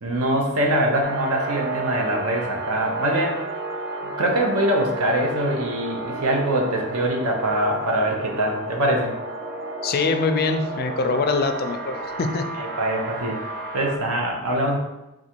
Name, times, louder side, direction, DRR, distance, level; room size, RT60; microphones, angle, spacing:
voice 1, 0.0-3.4 4.0-9.1 12.6-13.4 13.7-14.8, right 1 dB, 80° right, 1 dB, 0.9 m, -23 dB
sound 1, 1.0-14.0, right 3 dB, 45° right, 0.5 m, -32 dB
voice 2, 9.8-12.4, left 4 dB, 45° left, 7 dB, 0.4 m, -23 dB
3.9 x 2.5 x 4.4 m, 0.95 s
head